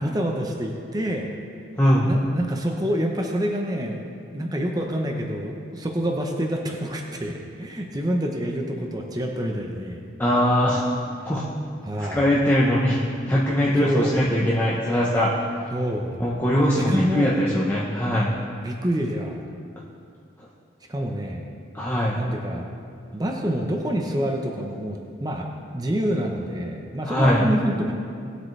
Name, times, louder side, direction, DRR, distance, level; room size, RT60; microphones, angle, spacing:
voice 1, 0.0-1.3 2.0-4.0 4.3-10.0 11.8-12.2 13.8-14.2 15.7-16.2 16.9-17.3 18.6-19.4 20.9-21.4 22.2-22.7 23.1-25.5 25.7-27.9, equal, 20° right, 1 dB, 0.9 m, -27 dB
voice 2, 1.8-2.1 10.2-10.8 11.2-11.5 12.0-13.0 13.3-15.3 16.2-18.3 21.7-22.2 27.0-27.4, equal, 10° left, -6 dB, 0.9 m, -21 dB
19.0 x 7.9 x 3.3 m, 2.3 s
head